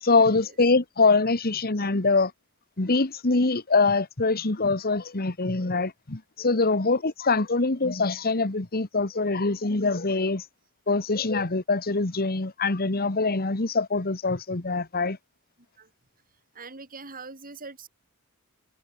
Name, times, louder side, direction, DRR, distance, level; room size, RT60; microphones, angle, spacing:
voice 1, 0.0-2.3 2.8-10.4 10.9-15.2, left 3 dB, 45° left, 1.5 m, -24 dB
voice 2, 16.5-17.9, right 4 dB, 40° right, 5.7 m, -42 dB
head